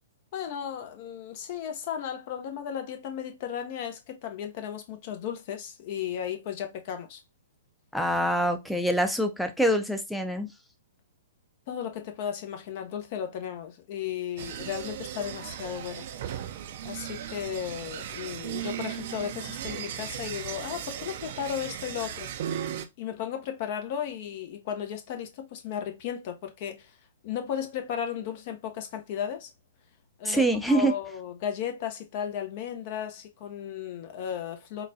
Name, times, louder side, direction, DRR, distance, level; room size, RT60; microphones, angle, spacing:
voice 1, 0.3-7.2 11.7-16.1 16.8-22.3 23.0-26.9 27.2-29.5 30.2-34.8, left 9 dB, 50° left, 0.7 m, -35 dB
voice 2, 7.9-10.5 30.2-30.9, right 1 dB, ahead, 0.5 m, -25 dB
sound 1, 14.4-22.9, right 10 dB, 55° right, 0.4 m, -37 dB
3.9 x 2.2 x 2.6 m
hypercardioid pair, 125°, 0 cm